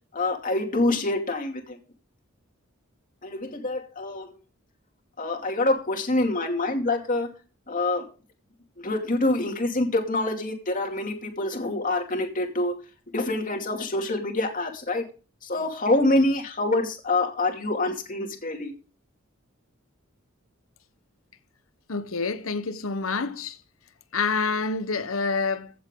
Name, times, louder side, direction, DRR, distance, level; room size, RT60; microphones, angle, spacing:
voice 1, 0.1-1.8 3.2-4.3 5.2-7.3 7.7-8.0 8.8-12.7 13.1-15.0 15.4-18.7, left 2 dB, 40° left, 2.6 m, -26 dB
voice 2, 21.9-23.6 24.1-25.7, left 4 dB, 85° left, 1.0 m, -27 dB
16.0 x 7.9 x 3.8 m
head